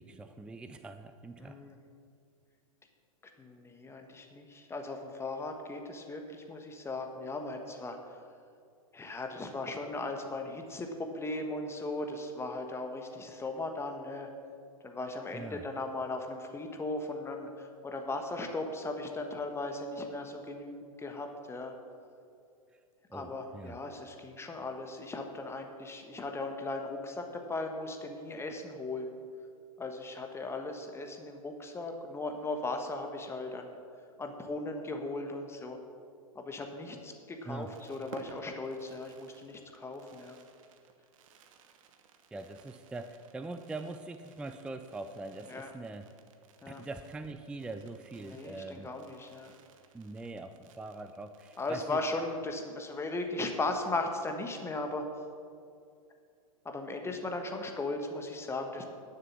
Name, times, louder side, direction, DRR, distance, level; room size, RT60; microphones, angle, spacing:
voice 1, 0.0-1.6 15.3-15.6 23.1-23.7 37.5-37.7 42.3-46.1 46.7-48.9 49.9-52.0, right 2 dB, 5° right, 9 dB, 0.4 m, -42 dB
voice 2, 1.4-1.8 3.4-8.2 8.9-14.3 14.8-21.7 23.1-29.2 29.8-33.7 34.2-35.8 36.3-40.4 45.5-45.7 46.6-46.8 48.2-49.5 51.6-55.0 56.6-58.9, left 2 dB, 15° left, 4 dB, 1.2 m, -37 dB
Fireworks, 37.3-52.5 52.7-52.8 53.0-53.3, right 6 dB, 60° right, 1.1 m, -58 dB
11.0 x 6.8 x 7.3 m, 2.3 s
hypercardioid pair, 105°, 19 cm